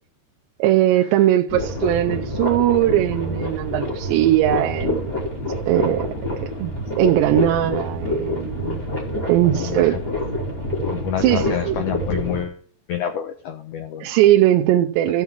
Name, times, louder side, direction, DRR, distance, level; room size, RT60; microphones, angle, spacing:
voice 1, 0.6-5.2 5.7-6.1 6.4-8.8 9.1-10.0 11.2-11.8 14.0-15.2, right 13 dB, 85° right, 2.9 m, -19 dB
sound 1, 1.5-12.4, left 1 dB, 15° left, 2.4 m, -27 dB
voice 2, 9.4-10.0 10.3-10.4 10.8-12.6 12.9-14.1, left 9 dB, 75° left, 1.8 m, -28 dB
14.0 x 7.2 x 4.5 m
omnidirectional pair, 5.0 m